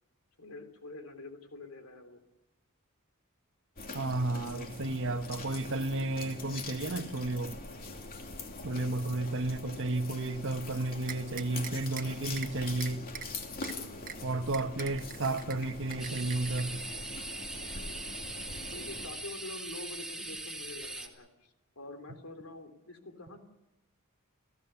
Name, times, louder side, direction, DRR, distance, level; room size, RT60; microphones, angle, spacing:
voice 1, 0.4-2.2 13.6-14.5 17.6-18.1 18.7-23.4, left 2 dB, 75° left, 3.5 m, -47 dB
sound 1, 3.8-19.1, left 3 dB, 45° left, 2.8 m, -43 dB
voice 2, 3.9-7.6 8.6-13.0 14.2-16.8, right 2 dB, 60° right, 1.2 m, -32 dB
sound 2, 11.1-12.0 12.4-12.5 12.8-13.3 13.6-13.7 14.1-14.2 14.5-15.6 15.9-16.6, right 8 dB, 40° right, 1.4 m, -41 dB
sound 3, 16.0-21.1, right 2 dB, ahead, 2.6 m, -41 dB
30.0 x 16.5 x 7.0 m
head